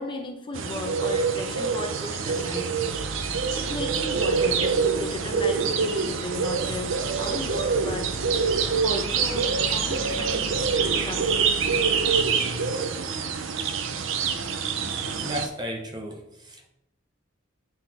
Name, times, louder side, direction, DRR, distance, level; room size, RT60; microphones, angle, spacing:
voice 1, 0.0-2.7 3.6-8.2 8.8-10.6 11.0-11.7, left 1 dB, 25° left, 3 dB, 0.8 m, -35 dB
sound 1, 0.5-15.5, right 5 dB, 65° right, 0.6 m, -26 dB
sound 2, 2.9-12.7, right 1 dB, 85° right, 1.4 m, -40 dB
voice 2, 15.1-16.7, equal, 20° right, 2 dB, 0.9 m, -34 dB
8.0 x 3.8 x 4.2 m, 0.85 s
head